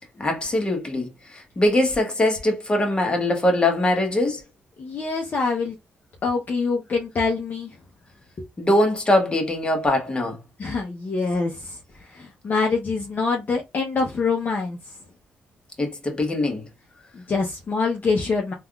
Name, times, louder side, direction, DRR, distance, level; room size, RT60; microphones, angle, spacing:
voice 1, 0.2-4.4 8.6-10.4 15.8-16.6, left 1 dB, 25° left, 1.0 m, -22 dB
voice 2, 4.8-5.8 6.2-7.8 8.4-8.5 10.6-14.8 17.1-18.5, left 4 dB, 45° left, 0.7 m, -25 dB
3.4 x 2.4 x 2.3 m
cardioid pair, 90°, 4 cm